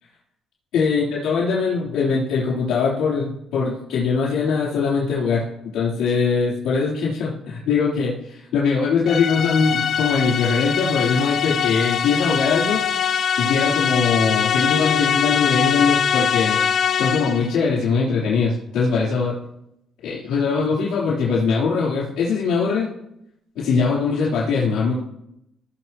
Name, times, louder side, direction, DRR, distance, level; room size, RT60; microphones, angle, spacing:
voice 1, 0.7-5.5 5.7-12.8 13.4-16.6 17.0-19.3 20.0-22.9 23.5-24.9, left 5 dB, 90° left, -9 dB, 3.5 m, -21 dB
sound 1, 9.1-17.5, left 8 dB, 55° left, 0.6 m, -22 dB
17.0 x 6.5 x 3.0 m, 0.82 s
cardioid pair, 90°, 0 cm